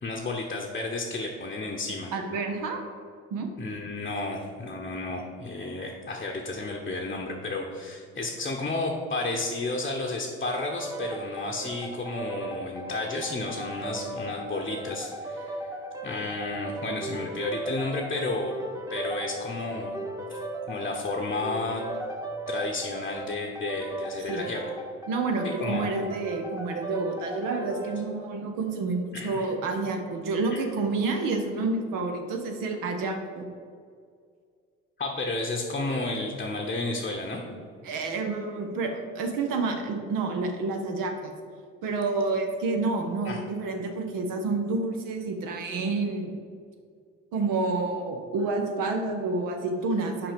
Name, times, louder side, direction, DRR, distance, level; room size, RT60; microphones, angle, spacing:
voice 1, 0.0-2.1 3.6-15.6 16.0-18.5 18.9-20.0 20.3-20.4 20.7-21.8 22.5-24.6 25.6-25.9 29.1-29.5 30.5-30.6 35.0-37.4 43.2-43.4, left 2 dB, 25° left, 0 dB, 1.0 m, -32 dB
voice 2, 2.1-2.8 3.3-3.5 24.3-24.5 25.1-33.5 37.8-41.3 41.8-46.3 47.3-50.3, right 3 dB, 60° right, 3 dB, 0.9 m, -29 dB
sound 1, 10.6-28.0, right 1 dB, 10° right, 1.2 m, -37 dB
5.9 x 5.1 x 5.1 m, 2.2 s
figure-of-eight pair, 50°, 38 cm